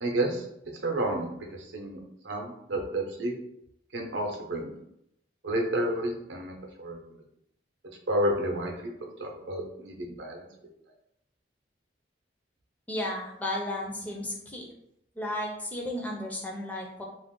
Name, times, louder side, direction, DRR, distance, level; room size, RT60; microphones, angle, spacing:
voice 1, 0.0-0.4 0.8-2.0 2.2-3.3 3.9-4.8 5.4-7.2 8.1-8.7 9.0-10.5, right 1 dB, 80° right, 1 dB, 0.6 m, -30 dB
voice 2, 12.9-14.7 15.2-17.0, left 1 dB, 10° left, -1 dB, 0.4 m, -34 dB
2.5 x 2.1 x 3.6 m, 0.79 s
head